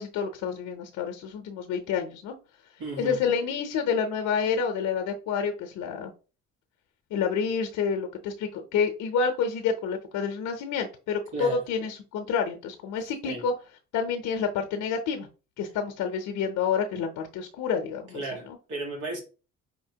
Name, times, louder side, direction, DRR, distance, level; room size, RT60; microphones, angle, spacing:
voice 1, 0.0-2.3 3.0-6.1 7.1-13.5 13.9-15.3 15.6-18.6, left 6 dB, 80° left, 0.7 m, -28 dB
voice 2, 2.8-3.2 11.3-11.6 13.2-13.4 18.1-19.2, right 3 dB, 75° right, 1.6 m, -34 dB
5.1 x 2.8 x 2.8 m
cardioid pair, 90°, 30 cm